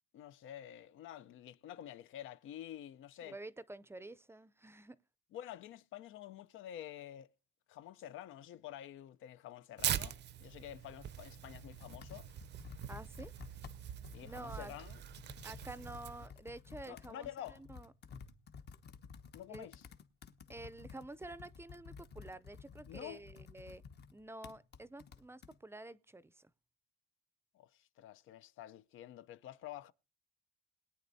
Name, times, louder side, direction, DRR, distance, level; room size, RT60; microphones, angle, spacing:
voice 1, 0.1-3.4 5.3-7.3 7.7-12.3 14.1-15.0 16.9-17.6 19.3-19.8 22.8-23.2 27.5-29.9, left 11 dB, 80° left, 0.6 m, -49 dB
voice 2, 3.2-5.0 12.9-13.3 14.2-14.7 15.4-17.9 19.5-19.7 20.5-23.8 24.1-26.5, right 2 dB, 10° right, 0.5 m, -49 dB
Tearing, 9.8-16.3, right 10 dB, 60° right, 0.6 m, -43 dB
Computer keyboard, 10.9-25.6, left 6 dB, 55° left, 1.1 m, -54 dB
21.0 x 9.2 x 2.7 m
cardioid pair, 90°, 20 cm